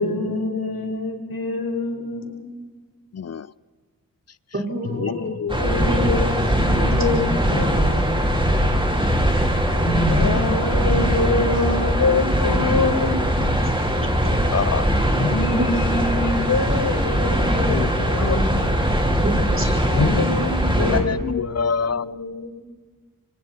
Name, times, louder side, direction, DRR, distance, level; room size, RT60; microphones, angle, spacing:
voice 1, 0.0-2.4 4.8-5.2 5.6-7.2 7.5-8.4 10.1-13.7 15.1-18.7 19.9-22.5, left 3 dB, 80° left, 3 dB, 4.7 m, -25 dB
voice 2, 3.1-3.5 5.0-5.6 14.5-14.9 17.7-17.9 18.3-18.4 20.9-22.0, left 6 dB, 45° left, 19 dB, 0.6 m, -25 dB
voice 3, 4.5-5.3 5.9-6.1 7.1-7.5 9.8-10.4 19.2-19.7, right 1 dB, 35° right, 1 dB, 5.3 m, -26 dB
sound 1, 5.5-21.0, equal, 15° right, 4.1 m, -21 dB
27.0 x 24.0 x 4.5 m, 1.4 s
cardioid pair, 45°, 36 cm